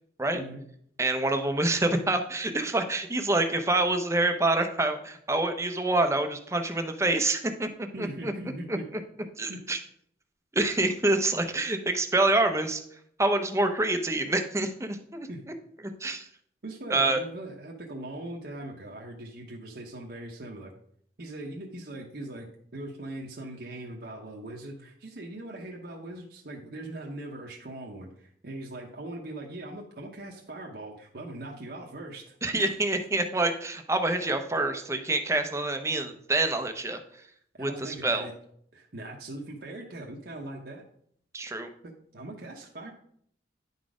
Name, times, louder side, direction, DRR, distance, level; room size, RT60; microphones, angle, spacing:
voice 1, 1.0-8.3 8.7-9.0 9.4-9.8 10.5-12.8 13.2-15.3 16.0-16.3 16.9-17.2 32.4-37.0 37.6-38.3 41.3-41.7, right 2 dB, 15° right, 7 dB, 0.7 m, -26 dB
voice 2, 7.9-8.9 9.5-9.6 15.3-15.4 16.6-20.7 21.2-32.6 37.5-38.3 38.7-40.8 41.5-41.6 42.1-42.9, right 1 dB, 55° right, -1 dB, 0.9 m, -40 dB
10.0 x 4.1 x 4.8 m, 0.66 s
head